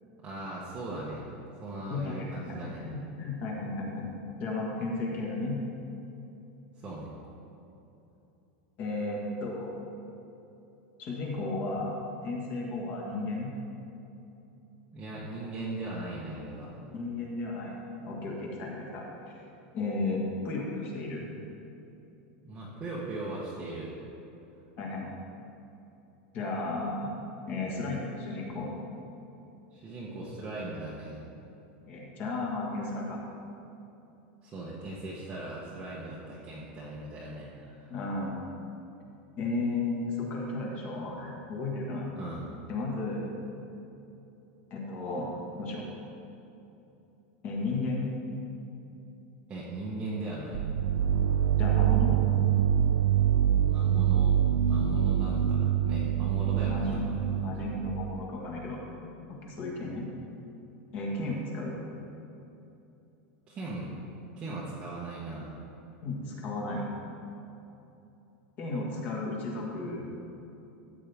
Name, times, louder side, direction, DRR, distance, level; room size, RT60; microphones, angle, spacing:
voice 1, 0.2-1.2 1.6-2.8 6.8-7.1 14.9-16.7 22.4-23.9 29.7-31.2 34.4-37.9 42.1-42.4 49.5-50.6 53.6-54.4 54.7-57.4 63.5-63.9 64.4-65.5, right 2 dB, 15° right, -6 dB, 1.0 m, -38 dB
voice 2, 1.9-2.6 2.8-4.1 4.4-5.6 8.8-9.7 11.0-11.9 12.2-13.5 16.9-17.7 18.0-19.1 19.7-21.2 24.8-25.1 26.3-27.2 27.5-28.7 31.9-33.2 37.9-38.4 39.4-42.1 42.7-43.3 44.7-45.3 45.6-45.9 47.4-48.1 51.6-52.2 56.7-58.8 59.4-60.1 60.9-61.8 66.0-66.8 68.6-70.1, left 2 dB, 30° left, -2 dB, 1.5 m, -34 dB
sound 1, 50.5-58.3, right 10 dB, 75° right, 0.4 m, -25 dB
13.5 x 8.4 x 3.5 m, 2.9 s
supercardioid pair, 180°, 6 cm